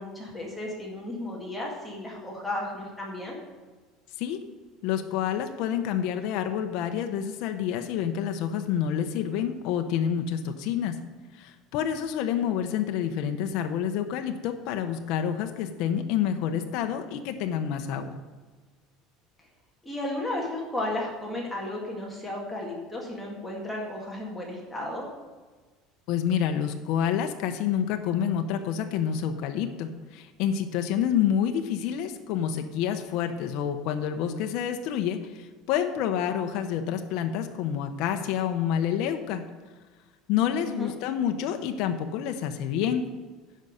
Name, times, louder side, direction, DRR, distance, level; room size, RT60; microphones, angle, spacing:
voice 1, 0.0-3.4 19.8-25.1 40.7-40.9, left 1 dB, 5° left, -3 dB, 1.8 m, -34 dB
voice 2, 4.8-10.9 11.3-18.2 26.1-39.4 40.3-43.0, left 9 dB, 55° left, 6 dB, 0.7 m, -28 dB
10.5 x 5.5 x 6.5 m, 1.4 s
cardioid pair, 175°, 0 cm